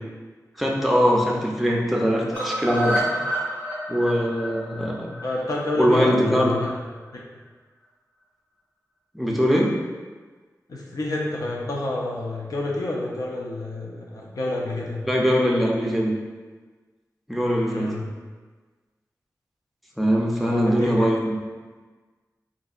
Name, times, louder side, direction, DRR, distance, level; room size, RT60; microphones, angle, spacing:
voice 1, 0.6-3.2 3.9-5.1 5.8-6.5 9.1-9.7 15.0-16.1 17.3-18.0 20.0-21.4, equal, ahead, -2 dB, 0.6 m, -21 dB
sound 1, 2.3-6.4 6.7-6.8 7.1-7.2 7.5-7.6, equal, 20° left, 1.3 m, -29 dB
voice 2, 5.2-6.7 7.1-7.2 10.7-15.0 17.6-18.1 20.4-21.1, left 2 dB, 65° left, -3 dB, 0.5 m, -29 dB
3.9 x 2.6 x 2.4 m, 1.4 s
wide cardioid pair, 75°, 7 cm